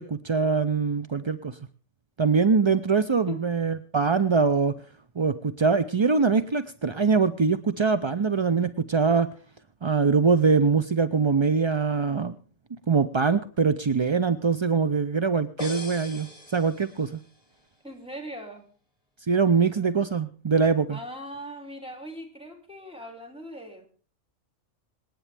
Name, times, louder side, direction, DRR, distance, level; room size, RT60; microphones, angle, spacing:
voice 1, 0.0-1.6 2.2-4.7 5.2-9.3 9.8-12.4 12.9-16.3 16.5-17.2 19.3-21.0, right 5 dB, 40° right, 12 dB, 0.4 m, -23 dB
sound 1, 15.6-17.4, left 2 dB, 25° left, 2.1 m, -41 dB
voice 2, 17.8-18.7 19.8-19.9 20.9-23.9, equal, 5° right, 2 dB, 2.9 m, -40 dB
26.5 x 9.2 x 3.4 m, 0.42 s
omnidirectional pair, 1.3 m